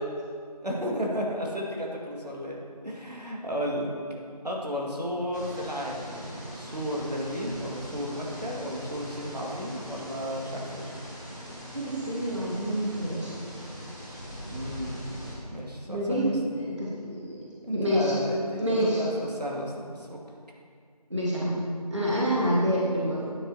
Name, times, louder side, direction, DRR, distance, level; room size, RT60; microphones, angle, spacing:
voice 1, 0.6-2.6 2.8-3.9 4.4-10.9 14.5-15.1 15.5-16.3 17.6-20.2, equal, 80° right, -3 dB, 2.0 m, -33 dB
sound 1, 5.3-15.4, equal, 25° left, 1.4 m, -41 dB
voice 2, 11.7-13.3 15.9-18.1 18.6-19.0 21.1-21.6 21.9-23.3, equal, 45° right, -6 dB, 1.4 m, -27 dB
9.7 x 8.4 x 2.8 m, 2.2 s
figure-of-eight pair, 180°, 21 cm